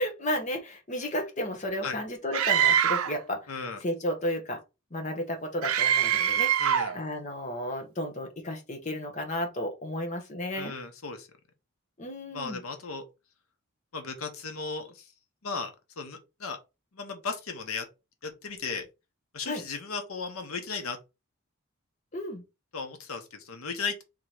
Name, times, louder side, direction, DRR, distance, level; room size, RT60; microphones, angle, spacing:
voice 1, 0.0-4.6 4.9-6.6 6.9-10.7 12.0-12.6 19.5-19.6 22.1-22.4, left 1 dB, 35° left, 1.0 m, -33 dB
Screaming, 2.3-3.2 5.6-7.0, right 9 dB, 85° right, 0.5 m, -24 dB
voice 2, 3.5-3.8 6.6-6.9 10.6-11.3 12.3-13.0 13.9-15.1 15.4-15.7 16.0-16.6 16.9-17.9 18.2-18.9 19.3-21.0 22.7-24.0, left 4 dB, 85° left, 1.0 m, -35 dB
3.8 x 2.9 x 4.8 m
head